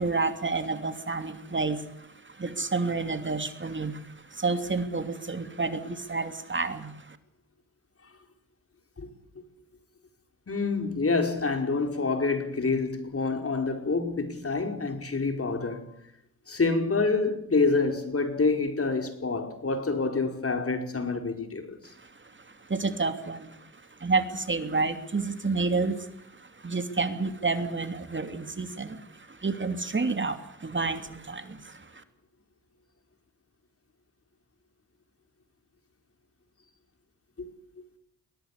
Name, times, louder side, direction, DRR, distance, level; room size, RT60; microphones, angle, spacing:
voice 1, 0.0-7.2 22.6-23.6 24.0-26.1 26.4-32.0, right 3 dB, 30° right, 2.8 m, -30 dB
voice 2, 10.5-15.9 16.5-21.9 37.4-37.5, left 3 dB, 40° left, 4.7 m, -27 dB
22.5 x 18.0 x 8.3 m
supercardioid pair, 50°, 36 cm